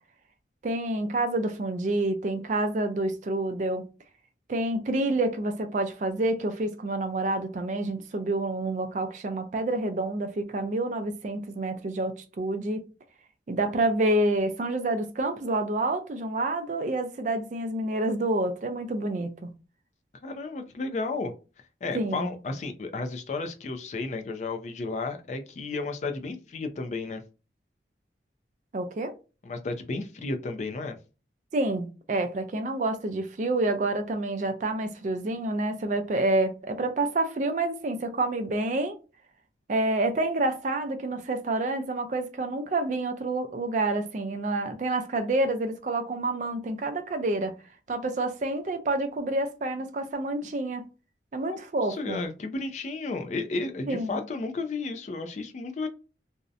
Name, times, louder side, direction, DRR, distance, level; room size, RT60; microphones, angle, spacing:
voice 1, 0.6-3.8 4.5-12.9 13.5-19.5 21.9-22.3 28.7-29.1 31.5-39.0 39.7-47.5 47.9-50.9 51.3-52.2 53.9-54.2, right 2 dB, 45° right, 0.3 m, -28 dB
voice 2, 20.2-21.3 21.8-27.2 29.4-31.0 51.5-51.6 51.9-55.9, left 3 dB, 40° left, 0.3 m, -33 dB
2.6 x 2.0 x 2.4 m
head